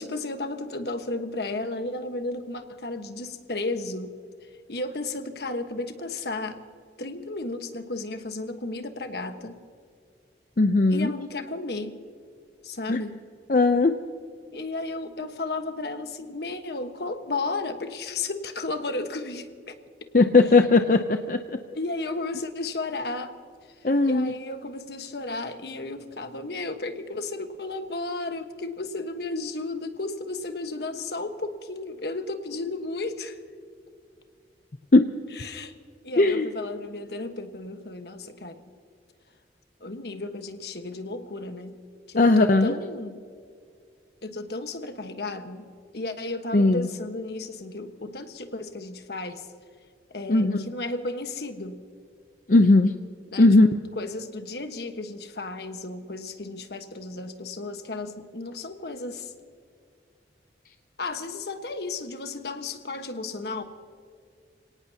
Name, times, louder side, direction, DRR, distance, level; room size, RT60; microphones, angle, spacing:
voice 1, 0.0-4.1 4.4-6.6 7.0-9.7 10.9-12.0 12.6-13.2 14.5-19.7 21.7-23.4 23.6-33.4 35.3-35.7 36.0-38.6 39.8-41.8 42.1-43.2 44.2-45.7 45.9-49.5 50.1-51.8 53.3-53.5 54.0-59.3 61.0-63.6, left 2 dB, 70° left, 7 dB, 1.3 m, -34 dB
voice 2, 10.6-11.1 12.9-13.0 13.5-14.0 20.1-21.4 23.8-24.3 34.9-35.1 36.2-36.5 42.2-42.7 46.5-46.9 50.3-50.7 52.5-52.9 53.4-53.7, left 2 dB, 50° left, 7 dB, 0.6 m, -18 dB
26.5 x 18.0 x 2.8 m, 2.2 s
head